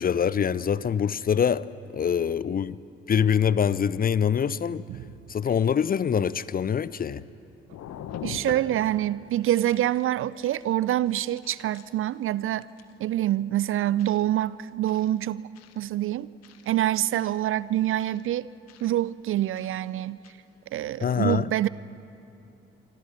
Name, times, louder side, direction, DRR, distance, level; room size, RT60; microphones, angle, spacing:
voice 1, 0.0-1.6 1.9-2.8 3.1-4.8 5.3-7.2 21.0-21.5, left 8 dB, 25° left, 0.5 m, -24 dB
sound 1, 6.4-7.3 7.7-8.9 9.3-10.1 10.4-10.7 11.1-12.1 12.6-12.9 14.0-14.2 14.9-15.1 15.5-15.8 16.4-16.7 17.1-17.3 18.0-18.2 18.7-18.9 19.5-19.8 20.2-20.3, left 8 dB, 50° left, 1.5 m, -43 dB
voice 2, 8.2-12.7 13.0-15.4 15.8-16.3 16.7-18.5 18.8-20.2 20.7-21.7, right 13 dB, 40° right, 0.5 m, -26 dB
27.5 x 25.0 x 6.0 m
figure-of-eight pair, 40°, 33 cm